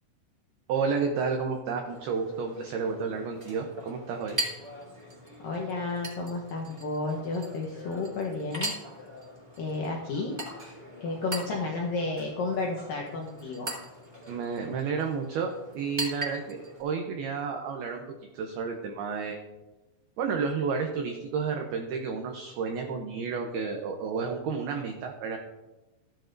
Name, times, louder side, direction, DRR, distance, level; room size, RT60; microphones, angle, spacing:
voice 1, 0.7-4.4 14.3-18.0 18.3-19.4 20.2-25.4, right 5 dB, 80° right, 3 dB, 2.3 m, -31 dB
Chink clink, 1.8-16.8, right 1 dB, 10° right, 1.9 m, -40 dB
voice 2, 5.4-8.7 9.6-10.4 11.0-13.7, left 3 dB, 80° left, -1 dB, 2.0 m, -32 dB
15.5 x 10.5 x 2.6 m, 1.1 s
omnidirectional pair, 5.5 m